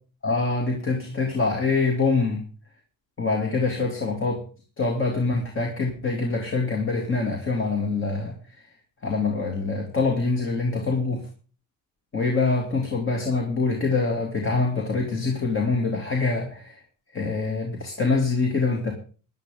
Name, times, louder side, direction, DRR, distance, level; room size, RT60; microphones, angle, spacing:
voice 1, 0.2-2.4 3.2-4.4 4.8-8.4 9.0-11.2 12.1-16.8 17.1-18.9, left 3 dB, 30° left, 1 dB, 2.7 m, -25 dB
15.5 x 11.0 x 3.8 m, 0.37 s
cardioid pair, 105°, 41 cm